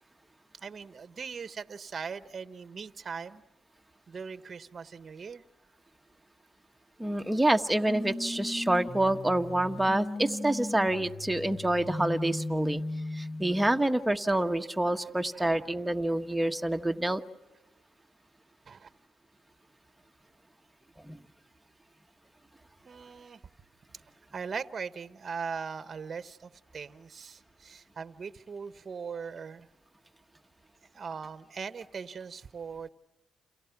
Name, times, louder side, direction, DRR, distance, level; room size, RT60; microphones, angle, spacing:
voice 1, 0.6-3.4 4.1-5.4 15.3-15.7 18.7-18.9 22.9-23.4 24.3-29.7 30.9-32.9, right 5 dB, 40° right, 12 dB, 1.1 m, -40 dB
voice 2, 7.0-12.8 13.1-17.2 21.0-21.2, right 1 dB, 5° right, 5 dB, 1.4 m, -27 dB
sound 1, 7.9-13.8, left 2 dB, 20° left, 2.0 m, -37 dB
30.0 x 29.0 x 6.0 m, 0.95 s
cardioid pair, 90°, 0 cm